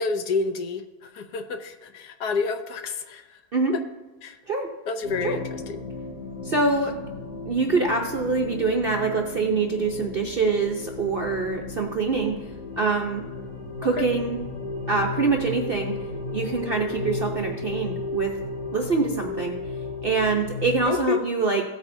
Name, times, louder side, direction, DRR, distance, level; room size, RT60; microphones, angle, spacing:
voice 1, 0.0-3.4 4.2-4.4 4.9-5.8 13.9-14.1 20.8-21.2, left 4 dB, 70° left, 7 dB, 1.2 m, -29 dB
sound 1, 5.0-20.9, left 3 dB, 45° left, 3.1 m, -34 dB
voice 2, 6.4-6.9 7.5-12.4 12.8-13.2 13.8-14.4 14.9-16.0 16.3-18.3 18.7-19.6 20.0-21.6, right 4 dB, 55° right, 1 dB, 0.6 m, -24 dB
16.0 x 8.6 x 2.7 m, 1.2 s
omnidirectional pair, 1.9 m